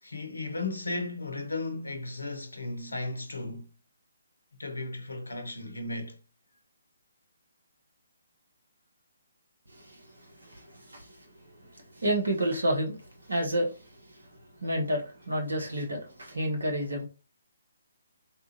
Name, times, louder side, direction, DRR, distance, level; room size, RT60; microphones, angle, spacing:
voice 1, 0.0-3.7 4.6-6.2, left 2 dB, 70° left, 0.7 m, -35 dB
voice 2, 9.7-10.0 10.4-11.1 11.9-13.0 13.3-13.8 14.0-14.1 14.6-17.1, right 1 dB, 70° right, 1.4 m, -30 dB
3.5 x 2.4 x 2.9 m
figure-of-eight pair, 140°, 0 cm